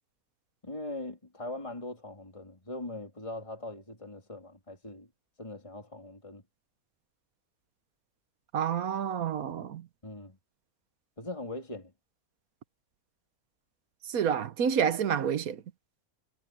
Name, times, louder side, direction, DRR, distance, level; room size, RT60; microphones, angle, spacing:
voice 1, 0.6-5.1 5.4-6.4 10.0-10.4 11.2-11.9, left 2 dB, 20° left, 3.4 m, -41 dB
voice 2, 8.5-9.8 14.1-15.6, right 8 dB, 80° right, 1.5 m, -28 dB
omnidirectional pair, 1.5 m